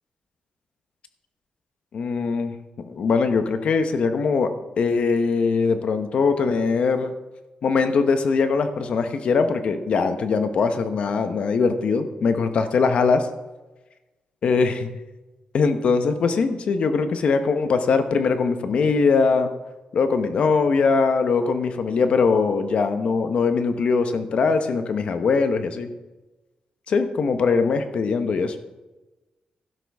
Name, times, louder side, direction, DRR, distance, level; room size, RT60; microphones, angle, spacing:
voice 1, 1.9-7.1 7.6-13.3 14.4-14.9 15.5-19.5 19.9-25.9 26.9-28.5, left 4 dB, 55° left, 8 dB, 0.9 m, -21 dB
12.5 x 11.0 x 3.5 m, 1.1 s
wide cardioid pair, 160°, 2 cm